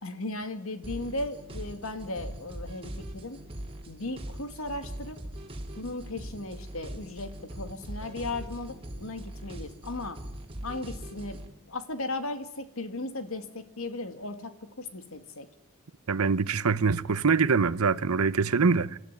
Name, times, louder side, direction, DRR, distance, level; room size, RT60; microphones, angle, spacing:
voice 1, 0.0-3.4 3.9-5.2 5.8-10.2 10.6-11.4 11.7-15.5, left 2 dB, 70° left, 2.1 m, -36 dB
sound 1, 0.8-11.5, right 1 dB, 25° right, 2.4 m, -41 dB
voice 2, 16.1-19.0, right 5 dB, 90° right, 0.8 m, -24 dB
28.5 x 13.0 x 9.6 m
head